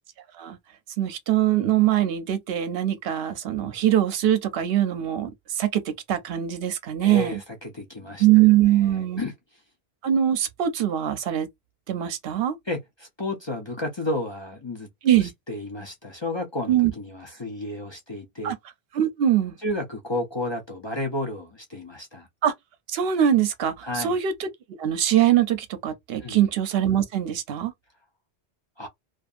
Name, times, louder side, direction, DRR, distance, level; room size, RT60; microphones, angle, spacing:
voice 1, 1.0-7.3 8.2-9.2 10.0-11.5 11.9-12.6 15.0-15.3 16.7-16.9 18.4-18.6 18.9-19.5 22.4-22.5 22.9-24.5 24.8-27.7, right 11 dB, 75° right, 0.8 m, -22 dB
voice 2, 7.0-8.3 8.6-9.6 12.7-14.9 15.1-18.5 19.6-22.3 23.8-24.2 26.2-26.5 28.8-28.9, left 1 dB, 35° left, 0.5 m, -32 dB
2.5 x 2.4 x 2.4 m
omnidirectional pair, 1.0 m